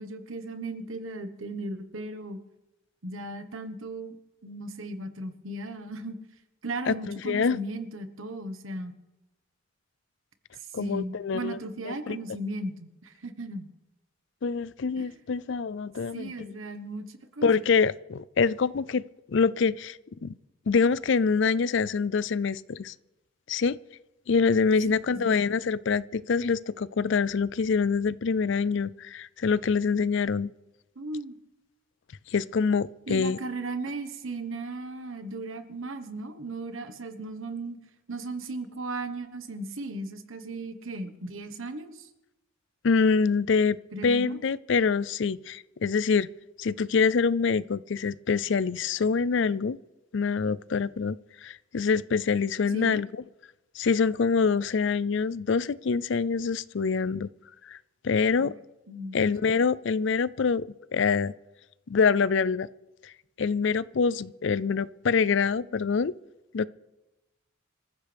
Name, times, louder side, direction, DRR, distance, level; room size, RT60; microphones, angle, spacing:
voice 1, 0.0-2.4 3.0-4.2 4.4-6.2 6.6-9.0 10.6-13.7 15.0-15.1 16.1-17.5 25.1-25.3 30.9-31.4 33.1-37.8 38.1-42.1 43.9-44.4 52.7-53.0 58.4-58.5 58.9-59.2, right 2 dB, 80° right, 1.4 m, -36 dB
voice 2, 6.9-7.6 10.7-11.6 11.8-12.2 14.4-16.5 17.4-20.3 20.7-22.9 23.5-23.8 24.3-30.5 32.3-33.4 42.8-43.8 44.0-46.3 46.6-49.8 50.1-51.2 51.4-53.1 53.7-57.3 57.7-57.8 58.0-58.5 59.1-60.6 60.9-61.3 61.9-62.7 63.0-63.1 63.4-66.1 66.5-66.7, left 5 dB, 60° left, 0.4 m, -25 dB
26.0 x 15.0 x 3.5 m
head